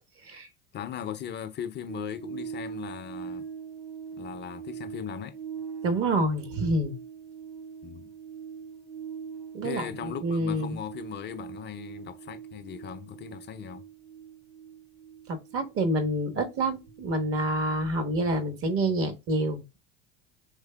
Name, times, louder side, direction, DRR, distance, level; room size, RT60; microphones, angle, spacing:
voice 1, 0.7-3.4 4.1-5.4 7.8-8.1 9.6-13.9, left 9 dB, 35° left, 0.5 m, -38 dB
sound 1, 1.9-18.4 18.7-18.8, right 7 dB, 80° right, 1.6 m, -42 dB
voice 2, 5.8-6.9 9.5-10.8 15.3-19.8, right 1 dB, 45° right, 1.1 m, -28 dB
5.0 x 3.2 x 2.2 m
hypercardioid pair, 80°, 31 cm